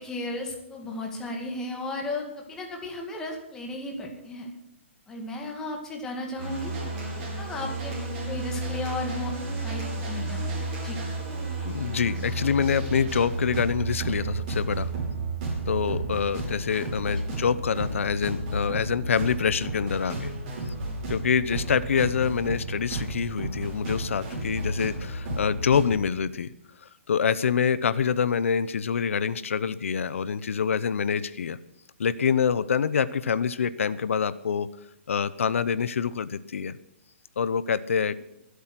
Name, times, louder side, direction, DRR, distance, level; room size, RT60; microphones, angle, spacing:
voice 1, 0.0-4.5 5.1-6.7 7.4-8.0 8.3-9.3 9.6-10.4 10.8-11.0 17.3-17.4, left 2 dB, 10° left, 1 dB, 2.0 m, -34 dB
sound 1, 6.4-25.9, right 2 dB, 30° right, 6.4 m, -32 dB
voice 2, 11.6-14.9 15.7-20.3 21.1-26.5 26.8-31.6 32.0-34.7 35.1-36.8 37.4-38.1, left 6 dB, 90° left, 16 dB, 0.8 m, -26 dB
23.0 x 8.4 x 6.0 m, 0.81 s
hypercardioid pair, 175°, 7 cm